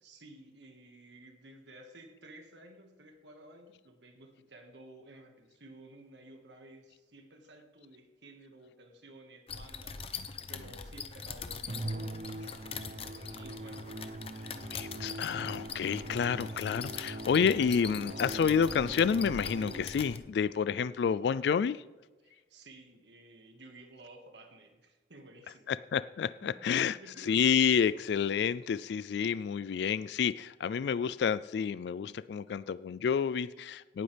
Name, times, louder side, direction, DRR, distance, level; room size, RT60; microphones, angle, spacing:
voice 1, 0.0-14.2 22.2-25.7 26.4-27.4, right 1 dB, 75° right, 4 dB, 1.7 m, -54 dB
sound 1, 9.5-20.2, left 6 dB, 35° left, 0.8 m, -43 dB
Musical instrument, 11.7-20.2, right 1 dB, 45° right, 0.7 m, -42 dB
voice 2, 14.7-21.8 25.7-34.0, left 7 dB, 65° left, 17 dB, 0.3 m, -29 dB
18.0 x 9.4 x 3.4 m, 1.2 s
head